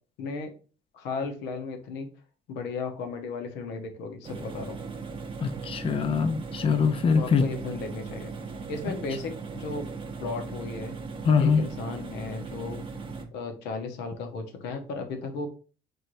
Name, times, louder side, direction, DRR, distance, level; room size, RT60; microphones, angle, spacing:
voice 1, 0.2-0.5 0.9-2.1 2.5-4.8 7.1-8.3 8.7-9.9 10.2-10.9 11.4-12.8 13.3-15.5, left 4 dB, 85° left, 0.9 m, -35 dB
sound 1, 4.2-13.2, right 4 dB, 30° right, 0.7 m, -38 dB
voice 2, 5.4-7.4 11.3-11.6, left 5 dB, 35° left, 0.5 m, -23 dB
4.4 x 3.1 x 2.6 m
cardioid pair, 110°, 17 cm